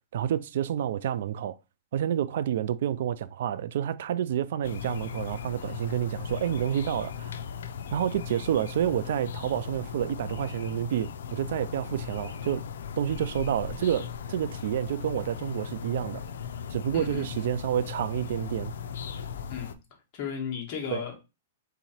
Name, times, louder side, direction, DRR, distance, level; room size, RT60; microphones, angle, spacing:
voice 1, 0.1-1.6 1.9-7.4 7.9-12.6 13.0-16.2 16.7-18.7 20.9-21.0, right 10 dB, 60° right, 0.3 m, -29 dB
sound 1, 4.6-19.8, left 7 dB, 80° left, 0.4 m, -38 dB
voice 2, 16.9-17.5 19.5-19.7 20.1-21.2, left 7 dB, 35° left, 1.3 m, -35 dB
3.7 x 3.0 x 4.2 m
hypercardioid pair, 155°, 0 cm